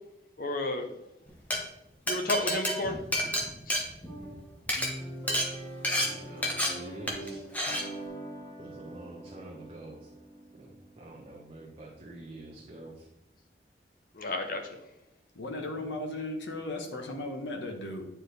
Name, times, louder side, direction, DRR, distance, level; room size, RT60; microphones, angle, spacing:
voice 1, 0.4-0.9 2.1-3.0 3.7-3.9 14.1-14.6, left 2 dB, 50° left, 5 dB, 0.9 m, -31 dB
Glass, 1.3-1.6 2.1-4.3 4.6-4.9 5.3-5.5 5.8-6.1 6.4-6.7 7.1-7.3 7.5-7.8, equal, 10° left, 1.0 m, -29 dB
sound 1, 4.1-12.5, right 1 dB, 25° left, 1.9 m, -44 dB
voice 2, 6.0-7.4 8.6-10.1 10.5-13.1, right 2 dB, 35° right, -2 dB, 0.9 m, -47 dB
voice 3, 15.3-18.1, left 2 dB, 85° left, 3 dB, 1.1 m, -36 dB
9.6 x 4.6 x 3.3 m, 0.87 s
head